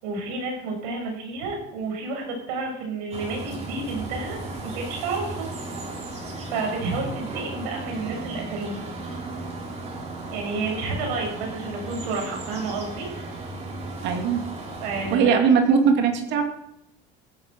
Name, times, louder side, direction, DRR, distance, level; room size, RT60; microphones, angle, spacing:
voice 1, 0.0-4.4 4.6-5.5 6.5-8.9 10.3-13.1 14.8-15.6, right 3 dB, 90° right, 2 dB, 7.0 m, -30 dB
sound 1, 3.1-15.2, right 2 dB, 35° right, 4.7 m, -35 dB
voice 2, 14.0-14.4 15.1-16.4, right 6 dB, 60° right, 4 dB, 2.7 m, -20 dB
16.0 x 9.3 x 7.8 m, 0.79 s
supercardioid pair, 120°, 20 cm